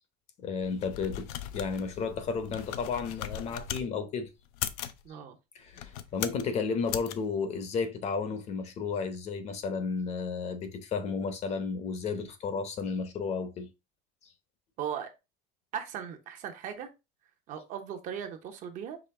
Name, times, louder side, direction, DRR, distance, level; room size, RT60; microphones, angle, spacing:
voice 1, 0.4-4.3 5.5-13.7, left 5 dB, 35° left, 0.7 m, -33 dB
sound 1, 0.6-3.9 4.5-5.0 5.7-6.5 6.9-7.1, left 11 dB, 85° left, 0.5 m, -38 dB
voice 2, 5.0-5.4 14.8-15.1 15.7-16.9 17.5-19.0, right 8 dB, 45° right, 0.8 m, -38 dB
5.0 x 3.2 x 3.3 m
cardioid pair, 155°, 19 cm